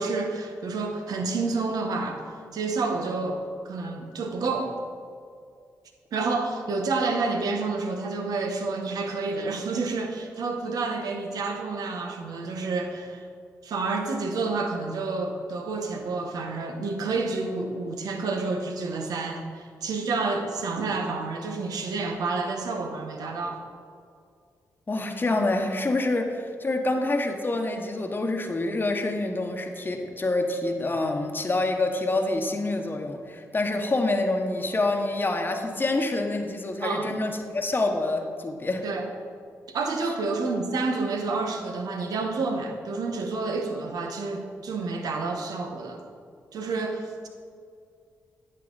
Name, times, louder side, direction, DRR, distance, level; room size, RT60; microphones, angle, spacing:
voice 1, 0.0-2.2 2.5-4.7 6.1-13.3 13.6-23.6 36.8-37.1 38.8-39.0 39.7-46.0 46.5-47.3, right 3 dB, 75° right, 3 dB, 1.1 m, -29 dB
voice 2, 24.9-38.8 40.0-40.1, left 2 dB, 30° left, 3 dB, 1.1 m, -27 dB
9.6 x 6.7 x 4.0 m, 2.3 s
supercardioid pair, 50°, 7 cm